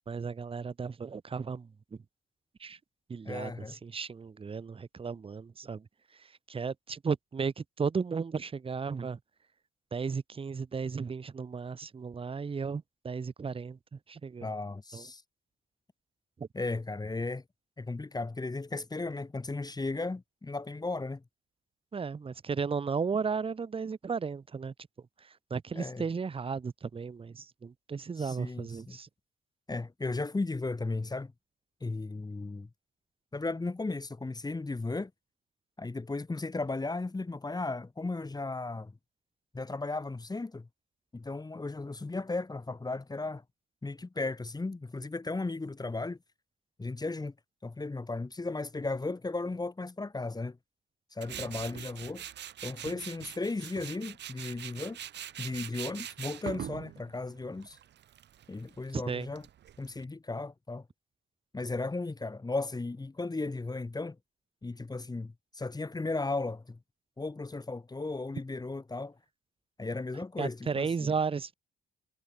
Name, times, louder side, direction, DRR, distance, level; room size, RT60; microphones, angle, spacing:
voice 1, 0.1-2.0 2.6-2.8 3.1-9.2 9.9-14.5 14.9-15.1 16.4-16.5 21.9-24.7 25.2-29.1 58.9-59.3 70.4-71.5, right 5 dB, 30° right, 0.9 m, -35 dB
voice 2, 3.2-3.8 14.4-15.2 16.5-17.4 17.8-21.2 25.7-26.0 28.2-29.0 29.7-31.3 31.8-32.7 33.3-35.1 35.8-38.9 39.5-40.7 41.1-43.4 43.8-46.2 46.8-47.3 47.6-50.6 51.1-52.2 52.6-55.0 55.4-57.8 58.5-59.4 59.8-60.9 61.5-64.2 64.6-66.8 67.2-69.2 69.8-71.1, left 3 dB, 20° left, 2.6 m, -35 dB
Tools, 51.2-60.0, right 10 dB, 60° right, 1.2 m, -43 dB
cardioid pair, 90°, 20 cm